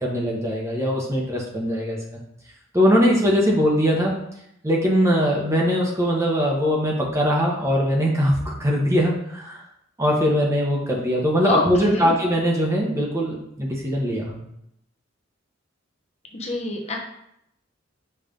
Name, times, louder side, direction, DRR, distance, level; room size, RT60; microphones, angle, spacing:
voice 1, 0.0-2.2 2.7-4.1 4.6-9.6 10.0-14.4, equal, 15° right, -2 dB, 1.0 m, -21 dB
voice 2, 11.4-12.2 16.3-17.0, left 3 dB, 35° left, 0 dB, 0.9 m, -26 dB
5.6 x 3.3 x 5.1 m, 0.77 s
head